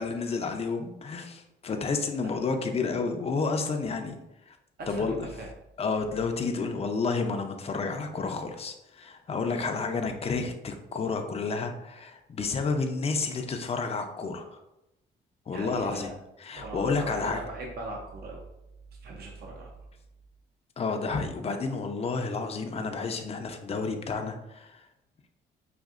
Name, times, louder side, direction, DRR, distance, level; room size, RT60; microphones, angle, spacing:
voice 1, 0.0-4.2 4.5-4.6 4.9-5.3 5.8-14.6 15.5-16.1 16.4-17.4 20.8-24.8, left 4 dB, 30° left, 5 dB, 0.5 m, -30 dB
voice 2, 4.8-5.5 15.5-16.2 16.5-18.5 19.0-19.9, right 2 dB, 50° right, 0 dB, 0.7 m, -39 dB
5.1 x 2.6 x 2.4 m, 0.89 s
cardioid pair, 90°, 20 cm